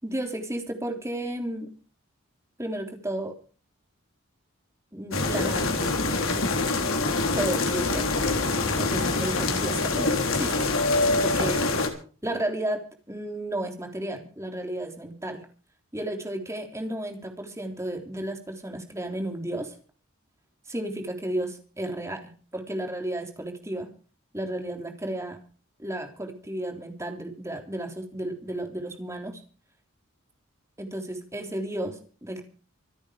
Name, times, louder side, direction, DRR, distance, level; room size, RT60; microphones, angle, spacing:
voice 1, 0.0-1.7 2.6-3.3 4.9-6.2 7.3-8.0 8.8-10.7 11.2-11.6 12.2-15.4 15.9-19.7 20.7-23.9 24.3-25.4 25.8-29.4 30.8-32.4, right 1 dB, 15° right, 4 dB, 3.5 m, -33 dB
sound 1, 5.1-11.9, left 3 dB, 80° left, 3.7 m, -25 dB
26.5 x 8.8 x 5.1 m, 0.40 s
head